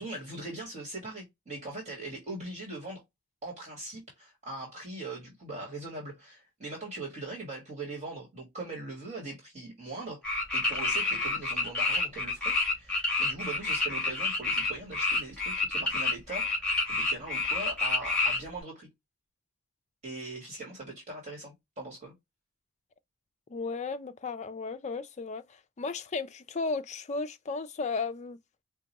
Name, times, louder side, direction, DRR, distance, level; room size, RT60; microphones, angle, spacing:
voice 1, 0.0-3.0 3.4-10.2 10.5-18.9 20.0-22.1, right 2 dB, 35° right, 1.5 m, -41 dB
sound 1, 10.2-18.4, left 3 dB, 5° left, 2.2 m, -28 dB
voice 2, 23.5-28.4, left 4 dB, 30° left, 0.4 m, -35 dB
4.8 x 2.2 x 2.9 m
head